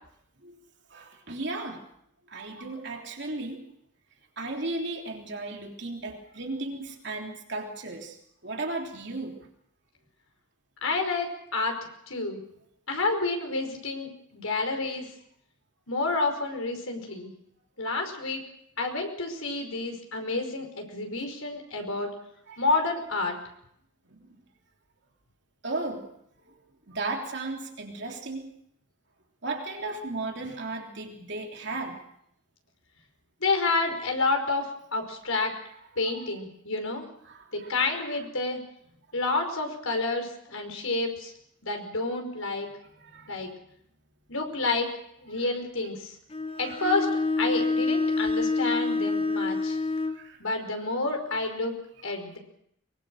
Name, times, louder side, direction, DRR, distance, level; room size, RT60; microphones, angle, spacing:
voice 1, 0.9-1.8 2.3-3.6 4.4-8.2 8.4-9.3 22.5-22.7 24.1-24.3 25.6-26.0 26.5-26.6 26.9-28.5 29.4-32.0 36.1-36.2 37.2-37.7 42.9-43.4 46.6-46.8 49.3-49.8 50.1-50.4, right 2 dB, 55° right, 2 dB, 3.3 m, -35 dB
voice 2, 10.8-11.7 12.1-12.4 12.9-15.1 15.9-17.3 17.8-18.4 18.8-22.1 22.6-23.4 33.4-35.5 36.0-37.1 37.5-38.6 39.1-41.3 41.6-42.7 43.3-43.5 44.3-44.9 45.2-46.2 46.6-47.1 47.4-49.8 50.4-51.7 52.0-52.4, left 3 dB, 80° left, 4 dB, 5.4 m, -29 dB
Bowed string instrument, 46.3-50.3, left 3 dB, 25° left, 1.1 m, -27 dB
23.5 x 21.5 x 6.4 m, 0.72 s
head